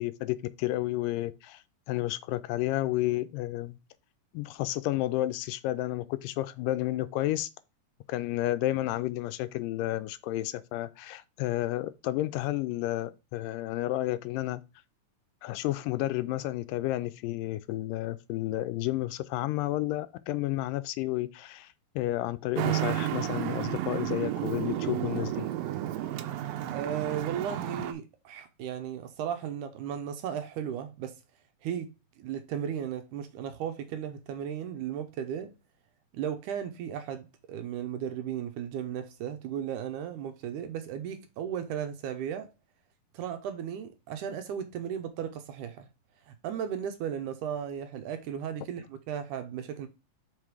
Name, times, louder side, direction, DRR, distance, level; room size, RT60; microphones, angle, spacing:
voice 1, 0.0-3.8 4.3-7.5 8.1-14.6 15.4-25.5, left 15 dB, 80° left, 2.1 m, -31 dB
Traffic noise roadway noise, 22.6-27.9, right 13 dB, 90° right, 2.5 m, -32 dB
voice 2, 26.6-31.2 31.6-35.5 36.1-42.5 43.1-45.9 46.3-49.9, right 9 dB, 75° right, 2.1 m, -35 dB
5.8 x 4.7 x 4.8 m
omnidirectional pair, 3.9 m